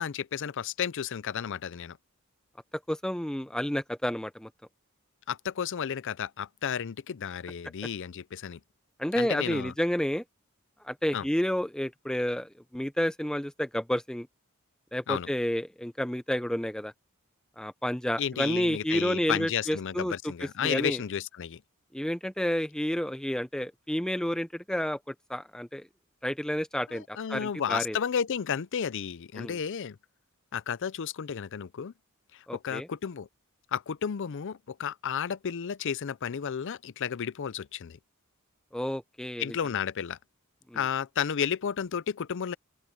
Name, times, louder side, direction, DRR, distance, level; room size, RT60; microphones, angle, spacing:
voice 1, 0.0-2.0 5.3-8.6 9.2-9.7 11.1-11.3 15.1-15.3 18.2-21.6 26.9-30.0 30.5-31.9 32.3-33.3 33.7-38.0 39.4-40.2 40.7-42.5, left 8 dB, 60° left, 0.5 m, -32 dB
voice 2, 2.9-4.5 9.0-10.2 10.8-14.3 14.9-16.9 17.6-20.1 20.6-21.0 21.9-25.9 26.2-28.0 29.4-29.6 32.5-32.9 38.7-39.5 40.7-40.8, equal, 5° left, 0.5 m, -30 dB
open air
head